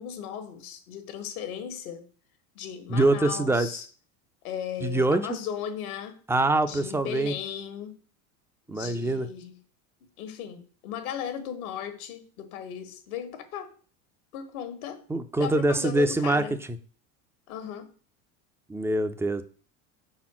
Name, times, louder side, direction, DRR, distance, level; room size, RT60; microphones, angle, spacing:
voice 1, 0.0-2.1 2.5-3.8 4.4-6.2 6.7-8.0 8.7-9.6 10.2-13.7 14.3-15.0 15.4-16.6 17.5-17.9, left 9 dB, 80° left, 1.4 m, -36 dB
voice 2, 2.9-3.7 4.8-5.3 6.3-7.3 8.7-9.3 15.1-16.4 18.7-19.4, right 2 dB, 5° right, 0.4 m, -24 dB
5.4 x 4.3 x 5.9 m
supercardioid pair, 100°, 43 cm